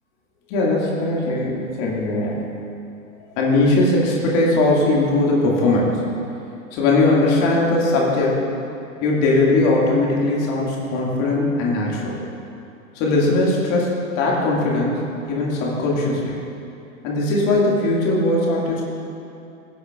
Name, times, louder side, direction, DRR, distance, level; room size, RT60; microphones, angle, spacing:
voice 1, 0.5-2.5 3.4-6.0 6.7-8.4 9.0-12.1 13.0-16.3 17.0-18.8, left 2 dB, 40° left, -3 dB, 2.2 m, -19 dB
16.5 x 7.9 x 2.5 m, 2.6 s
figure-of-eight pair, 100°, 41 cm